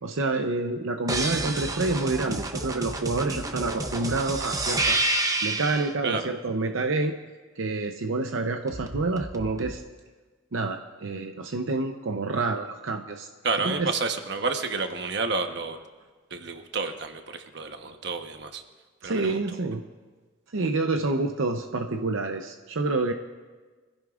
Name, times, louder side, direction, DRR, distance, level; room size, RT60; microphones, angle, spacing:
voice 1, 0.0-5.0 5.4-7.2 7.6-9.8 10.5-13.3 13.6-13.9 19.0-19.8 20.5-23.1, right 3 dB, 85° right, 5 dB, 0.7 m, -28 dB
sound 1, 1.1-5.9 8.7-9.8, right 2 dB, 20° right, 0.7 m, -29 dB
voice 2, 13.4-15.8 16.3-18.6 19.0-19.4, right 4 dB, 60° right, 6 dB, 1.1 m, -30 dB
25.0 x 15.5 x 2.5 m, 1.3 s
head